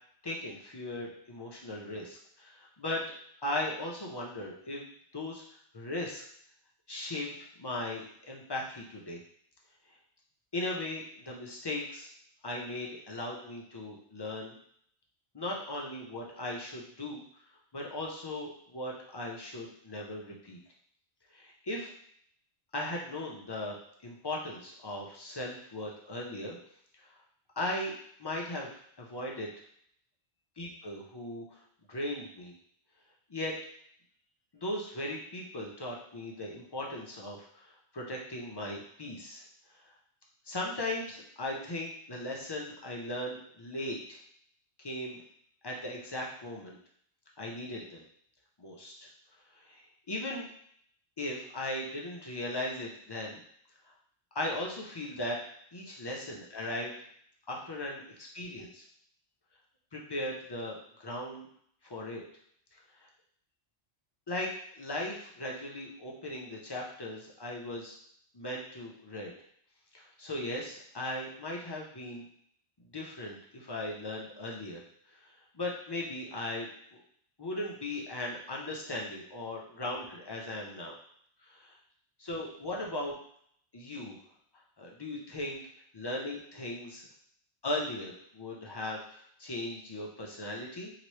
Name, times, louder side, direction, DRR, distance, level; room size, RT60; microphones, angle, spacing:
voice 1, 0.2-3.0 3.4-4.8 5.1-5.4 5.7-6.2 6.9-9.2 10.5-12.1 12.4-14.5 15.3-17.2 17.7-20.6 21.3-21.9 22.7-23.8 24.0-26.6 27.0-27.1 27.6-27.9 28.2-28.7 29.0-29.5 30.6-31.6 31.9-32.5 33.3-33.5 34.5-39.4 39.7-39.9 40.4-44.2 44.8-45.2 45.6-46.8 47.4-48.0 48.6-48.9 49.5-50.5 51.2-53.4 53.9-54.0 54.3-55.4 55.7-56.9 57.5-58.8 59.9-61.5 61.8-62.2 62.7-63.1 64.3-68.0 68.3-69.3 69.9-72.2 72.9-74.8 75.1-77.0 77.4-80.9 81.4-81.8 82.2-83.2 83.7-84.2 84.8-85.6 85.9-87.0 87.6-90.9, left 1 dB, 35° left, -2 dB, 0.4 m, -38 dB
2.9 x 2.9 x 3.1 m, 0.65 s
omnidirectional pair, 1.1 m